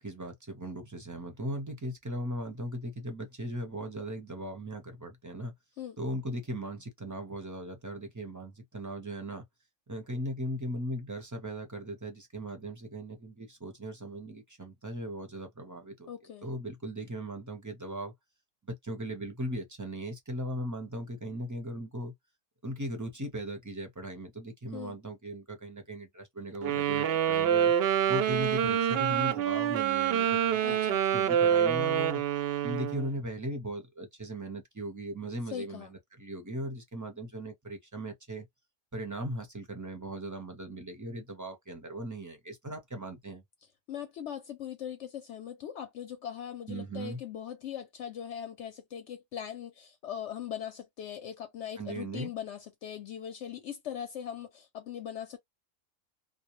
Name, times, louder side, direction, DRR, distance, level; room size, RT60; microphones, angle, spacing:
voice 1, 0.0-5.5 6.0-9.5 9.9-16.1 16.4-18.1 18.7-22.1 22.6-27.7 28.1-30.8 31.1-32.2 32.6-38.5 38.9-43.4 46.7-47.2 51.8-52.3, right 1 dB, 20° right, 0.5 m, -38 dB
voice 2, 16.1-16.5 24.7-25.0 30.6-31.0 35.5-35.9 43.9-55.4, left 9 dB, 70° left, 0.8 m, -40 dB
Wind instrument woodwind instrument, 26.6-33.1, right 9 dB, 65° right, 0.6 m, -26 dB
2.3 x 2.1 x 2.9 m
omnidirectional pair, 1.3 m